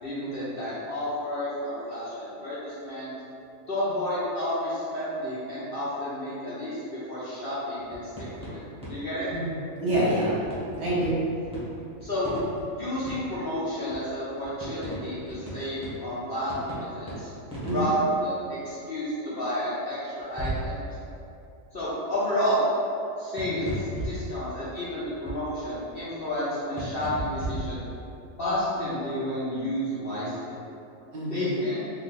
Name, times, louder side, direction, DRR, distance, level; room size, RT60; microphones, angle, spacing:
voice 1, 0.0-3.1 3.7-8.6 8.9-9.3 12.0-12.3 12.7-17.3 17.7-20.8 21.7-22.6 23.2-27.8 28.4-30.5 31.2-31.8, equal, 50° left, -10 dB, 0.8 m, -31 dB
sound 1, 7.8-9.5 9.9-10.2 10.4-13.6 13.9-14.0 14.4-18.6 20.2-21.7 23.4-26.0 26.8-27.6, equal, 5° right, 0.8 m, -37 dB
voice 2, 9.8-10.4 10.8-11.2 17.6-17.9 31.1-31.7, right 1 dB, 55° right, -9 dB, 1.1 m, -26 dB
3.1 x 2.4 x 4.0 m, 2.6 s
omnidirectional pair, 1.5 m